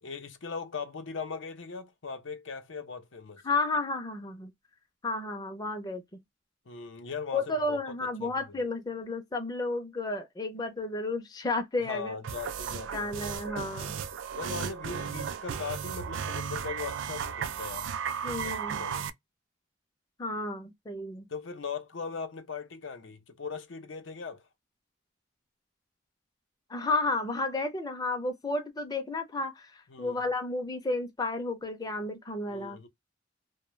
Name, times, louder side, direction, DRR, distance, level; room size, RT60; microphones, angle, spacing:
voice 1, 0.0-3.4 6.7-7.8 8.2-8.6 11.8-13.1 13.7-14.1 14.4-17.9 18.3-19.1 21.3-24.4 29.9-30.2 32.5-32.9, left 5 dB, 80° left, 0.7 m, -39 dB
voice 2, 3.4-4.5 5.0-6.0 7.3-12.2 12.9-14.0 18.2-18.8 20.2-21.3 26.7-32.8, left 2 dB, 20° left, 0.5 m, -32 dB
sound 1, 12.2-19.1, right 7 dB, 85° right, 0.4 m, -35 dB
2.2 x 2.2 x 3.0 m
head